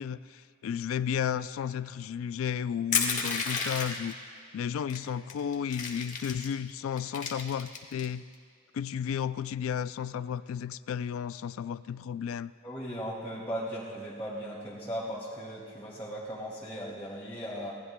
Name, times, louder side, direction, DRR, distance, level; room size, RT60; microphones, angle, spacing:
voice 1, 0.0-4.2 4.5-8.2 8.7-12.5, left 8 dB, 75° left, 15 dB, 0.3 m, -33 dB
Crushing, 2.9-4.1 4.9-5.0 5.3-6.5 7.0-8.0, left 5 dB, 35° left, 1.5 m, -31 dB
voice 2, 12.6-17.7, equal, 10° left, -11 dB, 2.6 m, -37 dB
26.0 x 19.5 x 2.2 m, 2.2 s
head